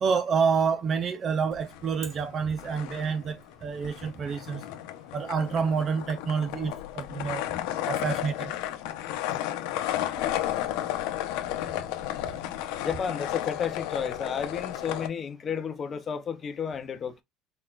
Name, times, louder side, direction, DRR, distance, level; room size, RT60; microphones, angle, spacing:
voice 1, 0.0-4.6 5.1-7.4 7.8-8.5, right 6 dB, 30° right, 0.4 m, -28 dB
sound 1, 1.5-2.3 2.5-15.1, left 13 dB, 75° left, 0.8 m, -33 dB
voice 2, 12.8-17.2, left 7 dB, 25° left, 0.6 m, -32 dB
4.3 x 4.0 x 2.4 m
cardioid pair, 155°, 0 cm